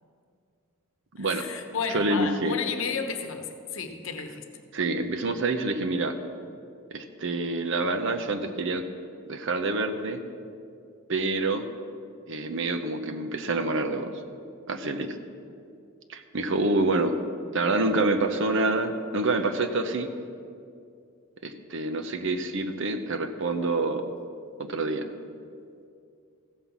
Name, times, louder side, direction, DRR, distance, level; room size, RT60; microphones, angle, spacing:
voice 1, 1.2-4.4, left 5 dB, 60° left, 6 dB, 1.0 m, -32 dB
voice 2, 1.9-2.6 4.7-6.2 6.9-8.8 9.3-10.2 11.1-11.6 12.3-14.1 14.7-15.2 16.1-17.2 17.5-20.1 21.4-24.0 24.6-25.0, right 2 dB, 55° right, 7 dB, 0.8 m, -27 dB
15.0 x 5.7 x 7.1 m, 2.4 s
head